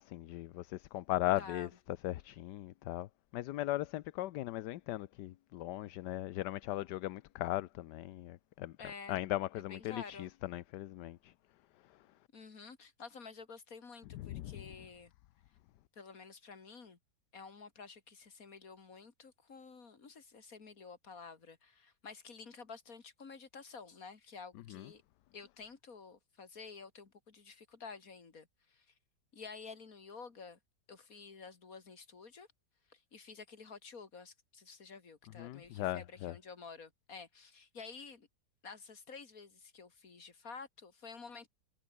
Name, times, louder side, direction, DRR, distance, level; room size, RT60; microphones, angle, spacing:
voice 1, 0.0-1.7 2.0-8.8 9.1-11.3 14.1-14.6 24.7-24.9 35.4-36.3, left 15 dB, 75° left, 1.2 m, -38 dB
voice 2, 1.4-1.7 8.8-9.2 9.5-10.3 12.3-15.1 16.0-17.0 17.3-25.0 25.3-28.9 29.3-30.6 30.9-32.5 32.9-38.3 38.6-41.5, left 5 dB, 50° left, 2.8 m, -51 dB
omnidirectional pair, 1.9 m